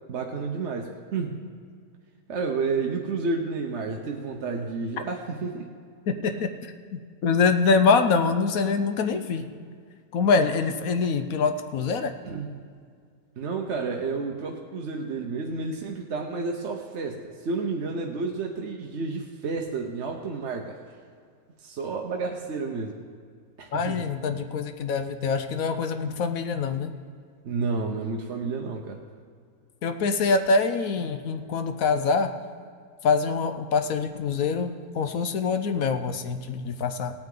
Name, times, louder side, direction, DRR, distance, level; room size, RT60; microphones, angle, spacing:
voice 1, 0.1-1.4 2.3-5.7 6.2-6.4 12.2-12.5 13.4-20.8 21.6-22.9 23.6-24.1 27.4-29.0, right 4 dB, 50° right, 1 dB, 1.0 m, -31 dB
voice 2, 6.1-6.5 6.9-9.4 10.1-12.1 23.7-27.0 29.8-32.3 33.0-37.1, left 4 dB, 65° left, 7 dB, 1.0 m, -24 dB
17.5 x 9.0 x 3.8 m, 2.1 s
omnidirectional pair, 1.8 m